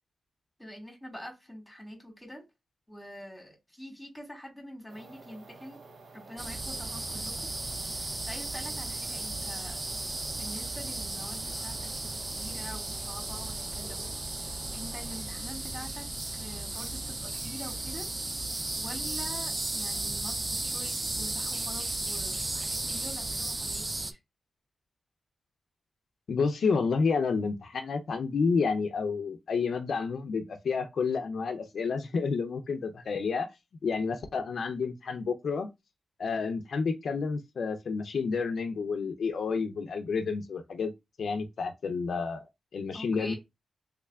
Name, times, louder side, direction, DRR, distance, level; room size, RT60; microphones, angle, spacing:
voice 1, 0.6-2.4 2.9-5.8 6.1-7.5 7.9-9.8 10.4-14.0 14.3-16.1 16.3-18.1 18.8-24.1 42.9-43.4, equal, 5° left, 1.8 m, -45 dB
sound 1, 4.9-15.2, right 3 dB, 70° right, 0.7 m, -51 dB
sound 2, 6.4-24.1, right 2 dB, 25° right, 0.4 m, -35 dB
voice 2, 26.3-33.5 33.8-35.7 36.2-40.9 41.2-42.5 42.7-43.3, left 5 dB, 70° left, 0.5 m, -30 dB
3.5 x 3.2 x 2.3 m
cardioid pair, 85°, 0 cm